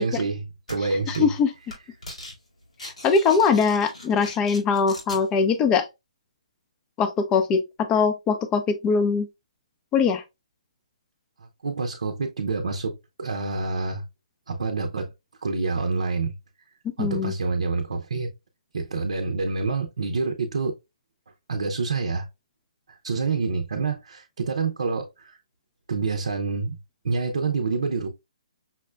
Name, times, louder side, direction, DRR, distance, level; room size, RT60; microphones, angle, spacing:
voice 1, 0.0-1.3 11.6-14.0 14.5-15.1 15.4-16.3 17.0-18.3 18.7-20.8 21.5-22.3 22.9-25.4 25.9-26.8 27.0-28.1, right 4 dB, 75° right, 0.6 m, -27 dB
sound 1, 0.7-0.8 1.1-1.4 1.7-2.3 2.6-5.2, left 1 dB, 85° left, 1.9 m, -39 dB
voice 2, 1.1-1.5 2.8-5.9 7.0-7.6 7.9-9.3 9.9-10.2 17.0-17.3, left 5 dB, 20° left, 0.5 m, -21 dB
5.6 x 2.1 x 2.2 m
hypercardioid pair, 140°, 4 cm